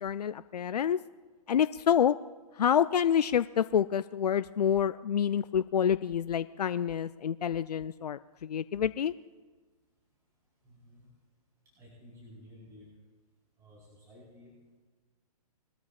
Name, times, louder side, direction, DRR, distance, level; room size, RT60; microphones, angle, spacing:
voice 1, 0.0-1.0 1.5-2.2 2.6-9.1, left 8 dB, 85° left, 13 dB, 0.4 m, -27 dB
voice 2, 10.6-11.1 11.8-12.9 13.6-14.8, left 1 dB, 15° right, -6 dB, 4.5 m, -54 dB
22.0 x 13.0 x 2.4 m, 1.3 s
hypercardioid pair, 130°, 20 cm